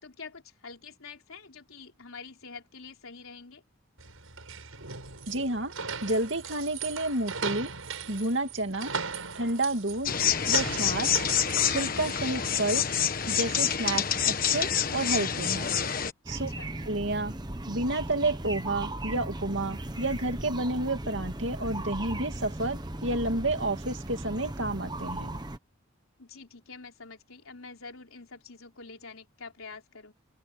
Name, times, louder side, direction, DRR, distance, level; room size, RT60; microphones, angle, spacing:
voice 1, 0.0-3.6 16.3-16.7 26.2-30.1, left 4 dB, 85° left, 3.7 m, -46 dB
sound 1, 4.0-14.4, right 5 dB, 80° right, 6.4 m, -39 dB
voice 2, 5.3-5.7 6.0-7.7 8.1-8.9 9.3-10.1 10.5-11.2 11.7-12.9 13.3-15.7 16.3-16.5 16.8-17.3 17.7-25.4, right 2 dB, 60° right, 2.5 m, -30 dB
sound 2, 10.1-16.1, left 8 dB, 40° left, 1.4 m, -27 dB
sound 3, 16.2-25.6, right 1 dB, 20° right, 1.1 m, -37 dB
open air
head